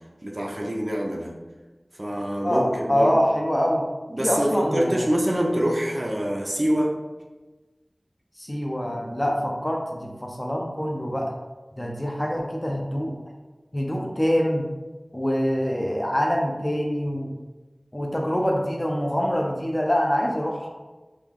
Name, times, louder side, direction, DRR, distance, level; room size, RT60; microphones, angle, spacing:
voice 1, 0.2-1.3 2.0-3.1 4.1-6.9, equal, 50° right, -1 dB, 0.5 m, -25 dB
voice 2, 2.4-3.8 4.2-5.1 8.4-11.3 11.8-13.2 13.7-14.7 15.1-17.3 17.9-20.7, equal, 25° left, 0 dB, 0.5 m, -25 dB
3.2 x 2.3 x 3.6 m, 1.2 s
wide cardioid pair, 40°, 0 cm